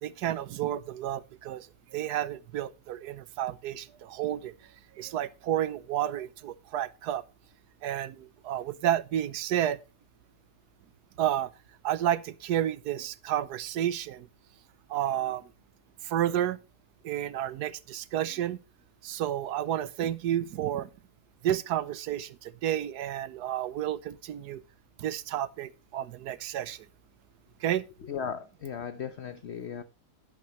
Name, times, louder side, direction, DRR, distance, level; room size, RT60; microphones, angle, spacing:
voice 1, 0.0-4.5 5.0-7.2 7.8-9.8 11.2-11.5 11.8-14.3 14.9-15.5 16.0-16.6 17.0-18.6 19.0-20.9 21.4-24.6 25.0-26.9 27.6-27.8, right 11 dB, 80° right, 1.3 m, -31 dB
voice 2, 28.0-29.8, left 7 dB, 50° left, 0.9 m, -36 dB
11.5 x 11.0 x 3.1 m
omnidirectional pair, 1.7 m